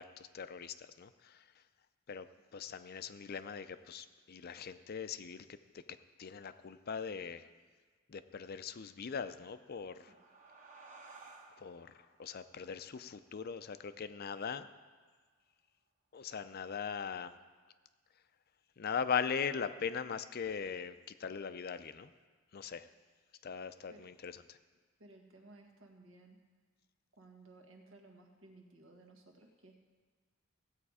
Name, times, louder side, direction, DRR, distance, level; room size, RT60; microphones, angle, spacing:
voice 1, 0.0-1.4 2.1-2.3 2.5-5.6 6.2-7.4 8.1-10.0 11.6-11.9 12.2-14.7 16.1-17.3 18.8-22.1 22.5-22.9 23.4-24.6, left 6 dB, 50° left, 12 dB, 0.5 m, -40 dB
sound 1, 9.6-14.7, right 3 dB, 40° right, 1.4 m, -59 dB
voice 2, 25.0-26.4 27.2-29.8, right 2 dB, 80° right, 2 dB, 1.7 m, -58 dB
16.0 x 8.0 x 4.9 m, 1.4 s
head